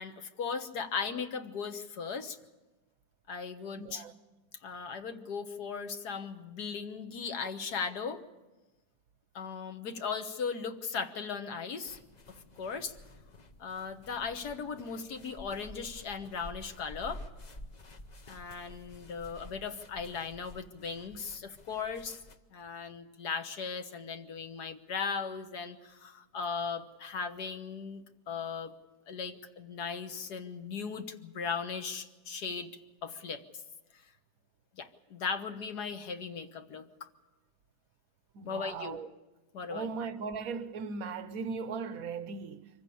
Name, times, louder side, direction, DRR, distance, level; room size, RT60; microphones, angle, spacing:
voice 1, 0.0-2.4 3.3-4.0 4.6-8.2 9.3-12.0 12.6-12.9 13.6-17.2 18.3-22.2 22.5-28.7 29.1-32.7 33.0-33.4 33.9-34.0 34.8-37.1 38.4-39.0 39.5-39.9, left 5 dB, 60° left, 1.7 m, -37 dB
voice 2, 3.8-4.1 38.3-39.1 39.7-42.7, right 5 dB, 55° right, 1.1 m, -38 dB
sound 1, 11.9-22.4, left 1 dB, 40° left, 0.6 m, -51 dB
25.0 x 15.0 x 8.5 m
omnidirectional pair, 2.1 m